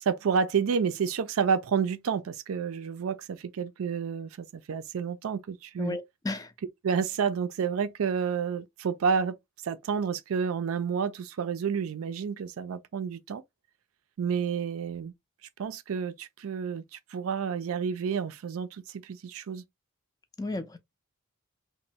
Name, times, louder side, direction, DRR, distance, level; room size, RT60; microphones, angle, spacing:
voice 1, 0.0-6.0 6.8-9.4 9.6-13.4 14.2-15.1 15.6-19.6, right 6 dB, 80° right, 0.4 m, -30 dB
voice 2, 5.8-6.5 20.4-20.8, left 2 dB, 15° left, 0.3 m, -33 dB
3.1 x 2.1 x 2.7 m
head